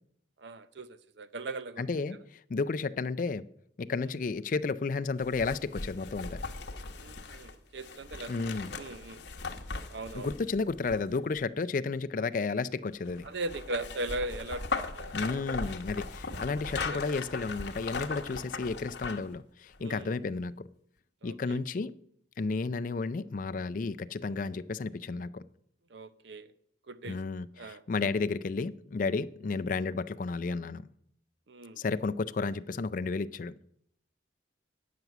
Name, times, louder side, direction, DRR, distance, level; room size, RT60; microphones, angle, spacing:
voice 1, 0.4-0.9 1.2-1.8 7.0-8.3 8.8-9.2 9.9-10.3 13.2-15.1 16.9-17.0 19.8-20.1 21.2-21.6 25.9-26.5 26.9-27.2 27.6-27.8 31.5-31.8, right 2 dB, 65° right, 0.7 m, -38 dB
voice 2, 1.8-2.2 2.5-3.4 3.8-6.4 8.3-8.8 10.1-13.3 15.1-20.7 21.2-22.0 22.4-25.4 27.0-30.9 31.8-33.5, left 4 dB, 45° left, 0.4 m, -32 dB
sound 1, 5.2-11.4 13.0-19.4 19.7-19.8, left 4 dB, 60° left, 1.0 m, -39 dB
9.4 x 5.9 x 8.0 m
head